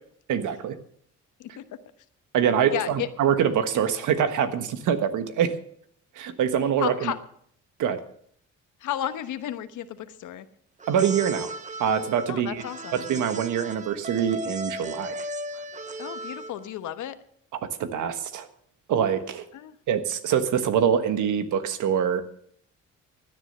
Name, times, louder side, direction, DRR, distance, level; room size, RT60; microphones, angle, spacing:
voice 1, 0.3-0.7 2.3-5.5 6.1-7.1 7.8-8.0 10.9-11.5 11.8-12.6 12.9-15.3 17.8-18.5 18.9-19.4 19.9-22.2, right 8 dB, 80° right, 9 dB, 1.4 m, -24 dB
voice 2, 2.7-3.1 6.8-7.2 8.8-10.5 12.3-13.0 16.0-17.1 19.5-19.8, left 11 dB, 80° left, 10 dB, 1.2 m, -32 dB
sound 1, 10.8-16.7, right 1 dB, 25° right, 0.8 m, -36 dB
16.5 x 10.0 x 5.5 m, 0.64 s
cardioid pair, 90°, 30 cm